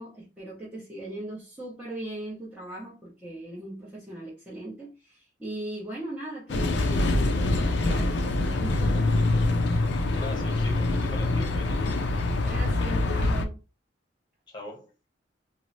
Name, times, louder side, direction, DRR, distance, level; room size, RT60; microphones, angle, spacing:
voice 1, 0.0-9.1 12.4-13.6, right 1 dB, 5° right, 0.7 m, -39 dB
sound 1, 6.5-13.5, left 2 dB, 65° left, 0.4 m, -25 dB
voice 2, 10.2-12.1 14.5-14.9, left 2 dB, 25° left, 0.9 m, -41 dB
3.0 x 2.0 x 2.6 m
head